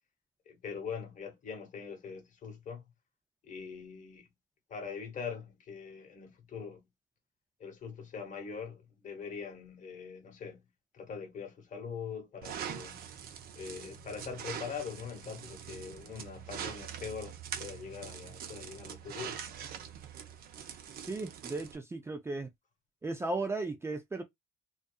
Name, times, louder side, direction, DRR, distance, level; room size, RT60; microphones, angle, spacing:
voice 1, 0.5-2.9 3.4-4.3 4.7-6.9 7.6-10.7 10.9-13.1 13.6-19.4, left 6 dB, 50° left, 1.0 m, -43 dB
sound 1, 12.4-21.8, right 8 dB, 60° right, 0.6 m, -43 dB
voice 2, 21.1-22.5 23.0-24.2, right 2 dB, 15° right, 0.4 m, -35 dB
2.6 x 2.3 x 2.3 m
cardioid pair, 110°, 17 cm